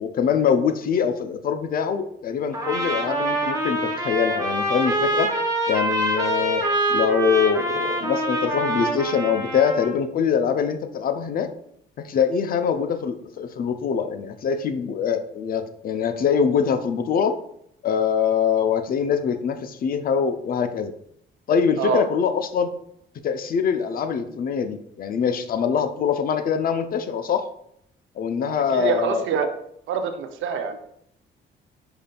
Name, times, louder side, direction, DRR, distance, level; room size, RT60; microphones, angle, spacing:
voice 1, 0.0-5.3 5.7-11.5 12.0-17.3 17.8-20.9 21.5-22.7 23.2-27.5 28.2-29.2, left 7 dB, 45° left, 8 dB, 0.4 m, -23 dB
Trumpet, 2.5-9.9, right 1 dB, 15° right, 0.8 m, -25 dB
voice 2, 28.4-29.5 29.9-30.8, right 6 dB, 80° right, 7 dB, 0.5 m, -25 dB
5.0 x 2.5 x 2.2 m, 0.71 s
cardioid pair, 90°, 20 cm